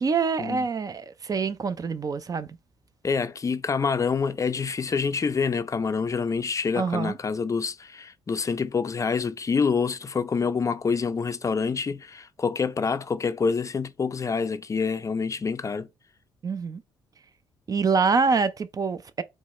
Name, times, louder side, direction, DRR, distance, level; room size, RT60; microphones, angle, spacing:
voice 1, 0.0-2.5 6.8-7.2 16.4-16.8 17.7-19.2, right 5 dB, 35° right, 0.4 m, -25 dB
voice 2, 3.0-15.9, left 5 dB, 30° left, 0.4 m, -27 dB
4.5 x 2.1 x 4.1 m
hypercardioid pair, 55°, 10 cm